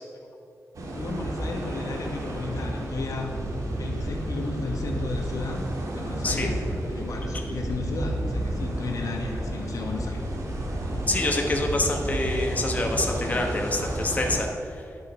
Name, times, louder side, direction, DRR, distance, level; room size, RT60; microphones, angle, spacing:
sound 1, 0.7-14.4, right 1 dB, 75° right, 1.7 m, -31 dB
voice 1, 0.9-3.4 3.7-5.6 5.9-6.6 6.9-10.2 13.1-13.3 13.8-13.9, left 3 dB, 85° left, 2 dB, 1.3 m, -34 dB
voice 2, 11.1-14.8, left 2 dB, 25° left, 1 dB, 1.1 m, -26 dB
10.5 x 6.5 x 5.6 m, 2.5 s
wide cardioid pair, 145°, 6 cm